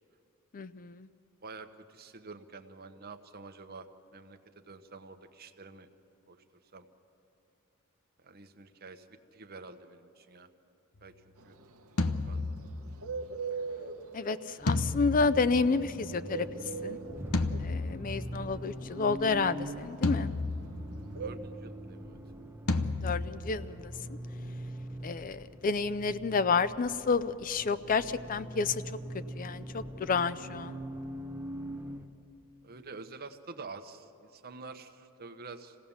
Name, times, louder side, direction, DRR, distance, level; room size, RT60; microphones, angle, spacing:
voice 1, 0.5-1.1 14.1-16.5 16.8-17.0 17.6-20.3 23.0-23.9 25.0-28.8 29.4-30.8, left 4 dB, 40° left, 14 dB, 0.4 m, -30 dB
voice 2, 1.4-3.9 4.1-5.9 6.3-6.4 6.7-6.9 8.2-9.1 9.3-10.5 11.0-11.6 12.3-12.6 21.2-22.2 32.6-35.8, right 4 dB, 45° right, 7 dB, 1.0 m, -48 dB
Bird, 11.4-21.3, right 5 dB, 75° right, 1.0 m, -40 dB
sound 1, 12.0-13.2 14.7-16.2 17.3-18.5 20.0-21.2 22.7-23.8, left 2 dB, 80° left, 0.8 m, -32 dB
Accelerating revving vroom, 14.6-32.1, right 1 dB, 10° right, 0.9 m, -43 dB
26.5 x 17.0 x 7.2 m, 2.8 s
head